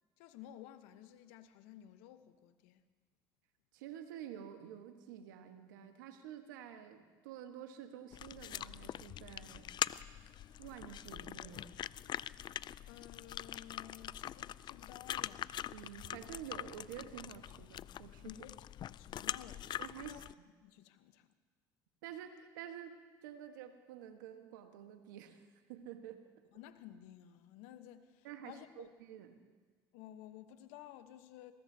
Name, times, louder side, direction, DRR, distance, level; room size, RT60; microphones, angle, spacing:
voice 1, 0.2-2.8 12.8-15.5 18.2-19.7 20.0-20.2 20.6-21.3 26.5-28.9 29.9-31.5, left 12 dB, 80° left, 1.0 m, -54 dB
voice 2, 3.7-9.7 10.6-11.7 15.7-18.3 19.8-20.2 22.0-22.9 23.2-26.2 28.2-29.4, right 10 dB, 90° right, 1.4 m, -49 dB
sound 1, 8.1-20.3, left 11 dB, 50° left, 0.4 m, -43 dB
21.0 x 20.0 x 2.8 m
supercardioid pair, 75°, 10 cm